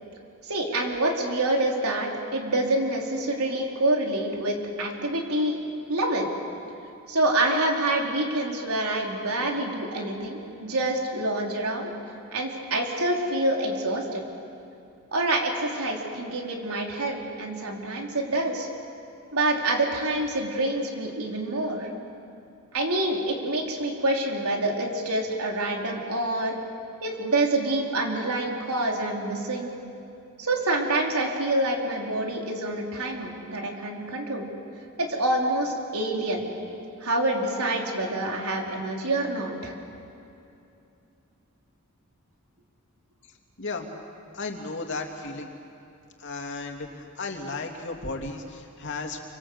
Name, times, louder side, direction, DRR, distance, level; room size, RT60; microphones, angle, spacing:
voice 1, 0.4-5.6 5.9-6.3 7.1-11.9 12.3-14.2 15.1-18.7 19.3-21.9 22.7-26.6 27.0-29.7 30.4-34.5 35.0-36.4 37.0-39.7, right 1 dB, 90° right, 1 dB, 3.9 m, -27 dB
voice 2, 43.6-43.9 44.3-45.5 46.2-49.2, left 3 dB, 55° left, 2 dB, 2.8 m, -34 dB
28.5 x 25.0 x 8.0 m, 2.7 s
head